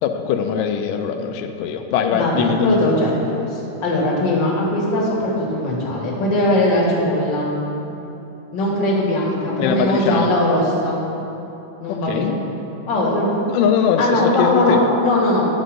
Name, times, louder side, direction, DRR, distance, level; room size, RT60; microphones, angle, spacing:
voice 1, 0.0-2.8 9.6-10.3 11.9-12.3 13.5-14.9, left 7 dB, 85° left, 6 dB, 2.2 m, -21 dB
voice 2, 2.1-3.1 3.5-7.5 8.5-11.0 11.8-12.4 12.9-13.3 14.0-15.4, left 1 dB, 45° left, -4 dB, 1.7 m, -20 dB
10.5 x 4.0 x 6.2 m, 3.0 s
omnidirectional pair, 3.7 m